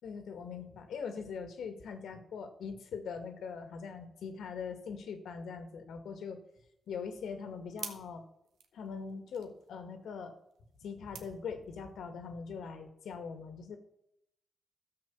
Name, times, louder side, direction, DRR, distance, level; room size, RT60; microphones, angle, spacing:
voice 1, 0.0-6.4 6.9-8.2 8.7-10.3 10.8-13.8, left 5 dB, 85° left, 7 dB, 1.8 m, -42 dB
sound 1, 6.5-12.1, right 7 dB, 90° right, 1.2 m, -52 dB
12.5 x 6.6 x 7.0 m, 0.78 s
cardioid pair, 65°, 0 cm